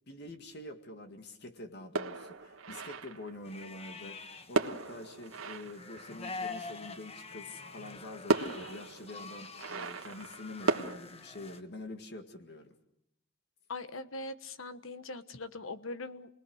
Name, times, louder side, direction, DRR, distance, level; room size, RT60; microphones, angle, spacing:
voice 1, 0.1-12.7, left 1 dB, 55° left, 6 dB, 2.0 m, -46 dB
sound 1, 2.0-3.4 4.5-6.5 7.7-7.8 8.3-10.9, right 3 dB, 90° right, 1.6 m, -35 dB
sound 2, 3.4-11.6, left 4 dB, 30° left, 1.3 m, -46 dB
voice 2, 13.7-16.3, left 2 dB, 75° left, 11 dB, 1.3 m, -41 dB
29.0 x 20.5 x 6.4 m, 0.81 s
head